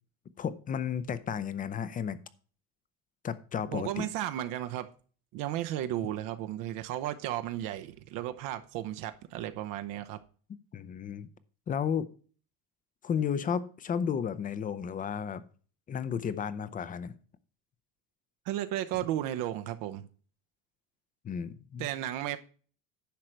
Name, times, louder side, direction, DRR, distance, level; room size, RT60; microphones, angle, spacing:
voice 1, 0.4-2.2 3.2-4.0 10.7-11.3 11.7-12.1 13.0-15.4 15.9-17.1 21.2-21.9, left 7 dB, 25° left, 0.6 m, -33 dB
voice 2, 3.7-4.9 5.3-10.2 18.5-20.1 21.8-22.4, right 12 dB, 70° right, 0.8 m, -34 dB
10.5 x 6.5 x 4.5 m
cardioid pair, 165°, 34 cm